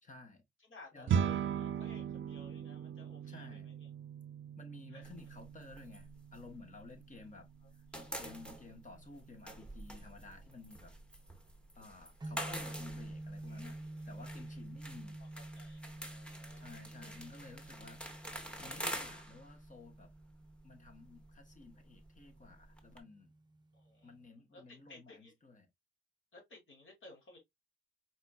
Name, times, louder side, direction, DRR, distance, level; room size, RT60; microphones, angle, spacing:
voice 1, 0.0-0.4 0.9-1.3 3.3-3.7 4.6-7.5 8.2-10.9 11.8-13.8 14.1-15.2 16.6-18.0 18.6-20.1 20.6-23.3 24.0-25.7, left 3 dB, 40° left, 1.2 m, -54 dB
voice 2, 0.6-3.9 4.9-5.1 7.9-8.2 13.5-13.8 14.4-14.6 15.4-17.2 23.7-25.3 26.3-27.4, left 2 dB, 70° left, 2.6 m, -58 dB
sound 1, 1.1-10.6, right 8 dB, 65° right, 0.4 m, -40 dB
sound 2, 5.0-7.3 7.6-23.0, equal, 5° left, 1.0 m, -47 dB
sound 3, 12.2-24.3, right 2 dB, 20° right, 0.7 m, -49 dB
4.4 x 4.1 x 2.3 m
wide cardioid pair, 140°, 21 cm